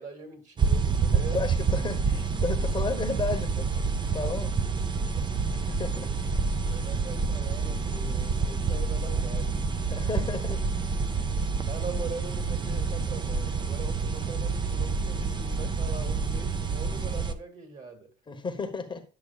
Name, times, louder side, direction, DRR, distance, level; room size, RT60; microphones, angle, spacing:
voice 1, 0.0-1.4 5.9-6.2 6.6-9.6 10.1-10.6 11.7-18.1, right 4 dB, 45° right, 4 dB, 2.5 m, -42 dB
sound 1, 0.6-17.3, right 5 dB, 25° right, 0.7 m, -28 dB
voice 2, 1.1-3.8 4.1-4.5 5.7-6.1 6.7-6.8 9.9-10.5 18.3-19.0, left 4 dB, 25° left, 6 dB, 1.1 m, -33 dB
9.7 x 6.2 x 2.4 m, 0.36 s
cardioid pair, 110°, 17 cm